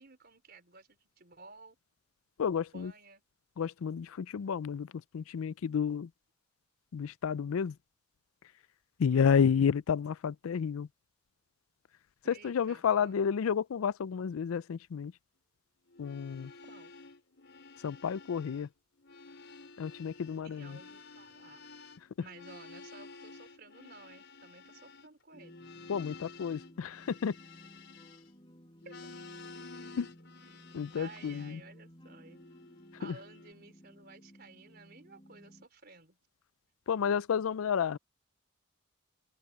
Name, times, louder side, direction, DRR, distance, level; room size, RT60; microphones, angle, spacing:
voice 1, 0.0-1.8 2.5-3.2 9.1-9.4 12.2-13.2 16.6-16.9 20.4-21.7 22.2-25.6 28.8-29.0 31.0-32.4 33.0-36.2, right 4 dB, 50° right, 4.2 m, -54 dB
voice 2, 2.4-2.9 3.6-6.1 6.9-7.8 9.0-10.9 12.4-15.1 16.0-16.5 17.8-18.7 19.8-20.8 25.9-27.4 30.0-30.1 30.7-31.6 33.0-33.2 36.9-38.0, left 7 dB, 85° left, 0.4 m, -31 dB
sound 1, 15.9-18.7 19.0-28.5 28.8-31.6 32.2-33.5, left 4 dB, 60° left, 5.9 m, -52 dB
sound 2, 25.3-35.7, equal, 25° left, 4.8 m, -56 dB
open air
head